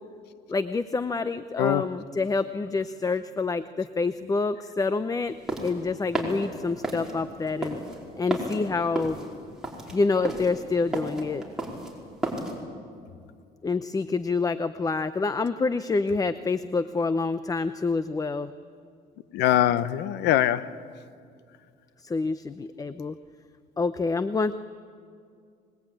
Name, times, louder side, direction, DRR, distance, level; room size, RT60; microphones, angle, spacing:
voice 1, 0.5-7.8 8.2-9.2 9.9-11.4 13.6-18.5 22.0-23.2 23.8-24.5, left 4 dB, 20° left, 13 dB, 0.7 m, -27 dB
sound 1, 5.2-12.6, right 2 dB, 5° right, 5.2 m, -33 dB
voice 2, 19.3-20.7, left 12 dB, 85° left, 15 dB, 0.9 m, -22 dB
25.5 x 21.0 x 9.1 m, 2.3 s
cardioid pair, 110°, 17 cm